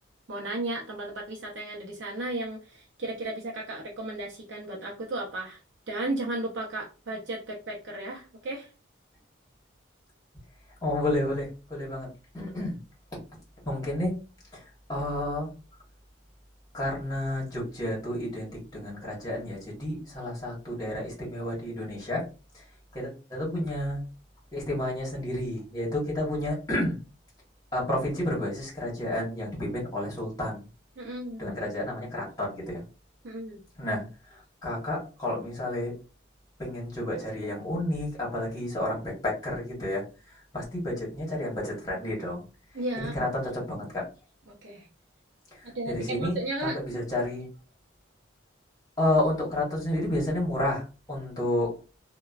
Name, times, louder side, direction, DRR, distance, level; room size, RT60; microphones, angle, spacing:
voice 1, 0.3-5.6 5.9-8.7 31.0-31.4 33.2-33.6 42.7-43.1 43.4-43.5 44.5-44.9 45.6-46.8, right 2 dB, 70° right, -3 dB, 0.6 m, -34 dB
voice 2, 10.8-12.8 13.6-14.1 14.5-15.5 16.7-22.2 22.5-22.7 22.9-24.0 24.5-27.0 27.7-30.7 31.4-32.8 33.8-35.9 36.6-42.4 43.0-44.1 45.5-47.5 49.0-51.7, left 1 dB, 20° left, -4 dB, 1.2 m, -31 dB
3.0 x 2.2 x 2.3 m, 0.33 s
head